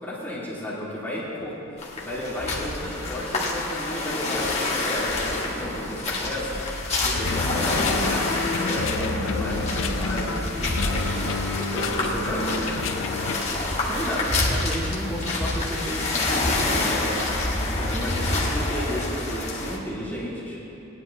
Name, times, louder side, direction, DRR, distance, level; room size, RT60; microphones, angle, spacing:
voice 1, 0.0-6.6 7.0-12.7 13.1-13.2 13.8-16.2 16.7-20.6, equal, 10° left, -8 dB, 1.8 m, -33 dB
sound 1, 1.8-19.8, left 2 dB, 30° left, 1.4 m, -27 dB
sound 2, 7.1-13.4, left 4 dB, 65° left, 0.5 m, -30 dB
19.0 x 9.9 x 2.8 m, 3.0 s
head